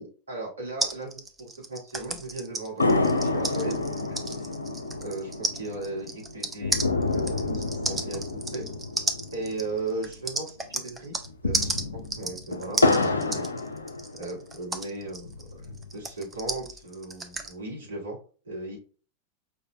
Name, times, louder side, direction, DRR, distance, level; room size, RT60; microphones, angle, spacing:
voice 1, 0.0-4.5 5.0-8.2 8.5-8.7 9.3-11.1 11.4-13.5 14.1-18.2 18.4-18.8, right 2 dB, 75° right, -3 dB, 2.0 m, -37 dB
sound 1, 0.8-11.3 11.5-17.5, right 3 dB, 15° right, 0.6 m, -33 dB
sound 2, 2.8-10.4 10.6-10.7 11.2-14.6 15.1-16.1, left 2 dB, 80° left, 0.4 m, -29 dB
5.1 x 3.2 x 2.3 m, 0.38 s
figure-of-eight pair, 90°, 0 cm